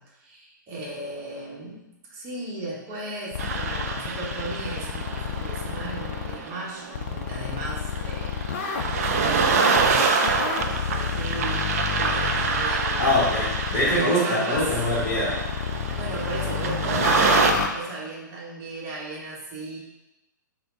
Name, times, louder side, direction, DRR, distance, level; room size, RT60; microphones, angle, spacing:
voice 1, 0.0-1.8 2.1-8.3 8.7-10.1 10.6-13.3 13.6-14.7 15.9-19.8, right 2 dB, 25° right, -5 dB, 1.1 m, -36 dB
sound 1, 3.3-6.4 6.9-14.0 14.6-17.7, left 7 dB, 40° left, 0.4 m, -30 dB
sound 2, 3.4-17.5, right 5 dB, 45° right, 0.4 m, -27 dB
voice 2, 13.0-15.4, left 1 dB, 20° left, -7 dB, 1.3 m, -23 dB
4.4 x 2.2 x 3.8 m, 0.96 s
figure-of-eight pair, 115°, 11 cm